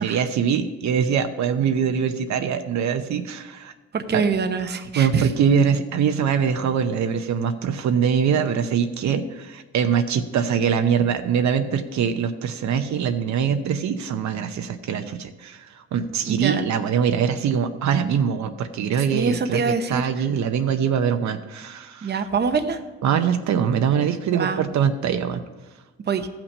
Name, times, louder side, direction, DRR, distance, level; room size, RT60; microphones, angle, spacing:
voice 1, 0.0-3.7 4.1-4.2 5.0-22.1 23.0-25.4, right 7 dB, 65° right, 7 dB, 0.8 m, -23 dB
voice 2, 3.9-5.3 16.3-16.7 19.0-20.0 22.0-22.8 24.3-24.6 26.1-26.3, right 5 dB, 35° right, 8 dB, 0.8 m, -24 dB
14.0 x 6.0 x 5.4 m, 1.2 s
cardioid pair, 90°, 30 cm